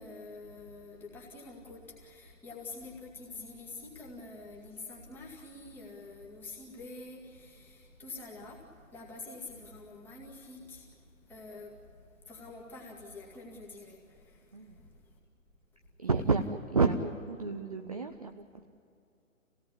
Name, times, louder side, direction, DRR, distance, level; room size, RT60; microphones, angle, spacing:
voice 1, 0.0-8.6 8.9-10.9 11.3-11.7 12.3-14.0, left 3 dB, 5° left, -3 dB, 2.1 m, -46 dB
voice 2, 16.0-18.6, right 4 dB, 30° right, 5 dB, 0.6 m, -30 dB
26.5 x 17.5 x 10.0 m, 2.5 s
figure-of-eight pair, 140°, 41 cm